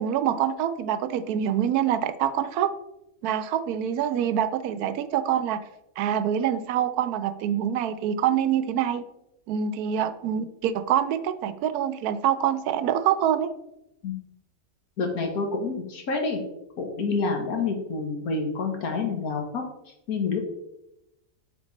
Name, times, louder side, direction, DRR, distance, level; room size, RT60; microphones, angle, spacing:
voice 1, 0.0-2.7 3.2-5.6 6.0-9.0 9.5-13.5 17.6-17.7, right 9 dB, 90° right, 13 dB, 1.1 m, -25 dB
voice 2, 15.0-16.4 16.8-19.6 20.1-20.5, left 4 dB, 80° left, 3 dB, 1.8 m, -28 dB
7.8 x 4.4 x 4.1 m, 0.86 s
omnidirectional pair, 1.5 m